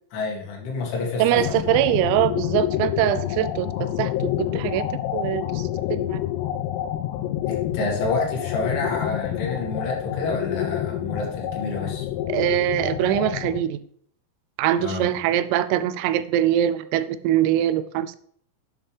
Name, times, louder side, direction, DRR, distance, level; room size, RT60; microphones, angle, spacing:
voice 1, 0.1-1.4 7.5-12.1 14.8-15.1, left 3 dB, 70° left, -1 dB, 4.5 m, -28 dB
voice 2, 1.2-4.9 5.1-6.2 12.3-13.8 14.6-18.2, right 12 dB, 85° right, 13 dB, 3.3 m, -23 dB
sound 1, 1.4-13.6, left 12 dB, 90° left, 3.4 m, -28 dB
11.0 x 7.4 x 3.4 m, 0.62 s
omnidirectional pair, 6.0 m